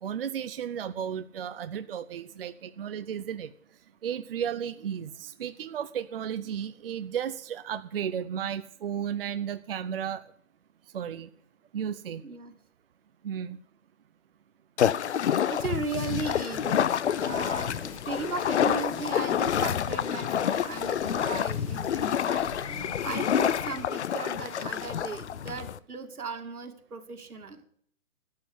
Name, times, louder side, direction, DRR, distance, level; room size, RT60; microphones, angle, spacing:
voice 1, 0.0-3.5 4.0-10.2 10.9-11.3 11.7-12.2 13.2-13.6, right 8 dB, 40° right, 11 dB, 0.6 m, -34 dB
voice 2, 12.2-12.5 15.5-27.6, right 4 dB, 85° right, 6 dB, 2.3 m, -37 dB
sound 1, 14.8-25.8, left 9 dB, 50° left, 0.6 m, -28 dB
sound 2, 16.5-23.8, left 6 dB, 20° left, 1.4 m, -45 dB
12.5 x 8.5 x 7.9 m, 0.64 s
hypercardioid pair, 150°, 43 cm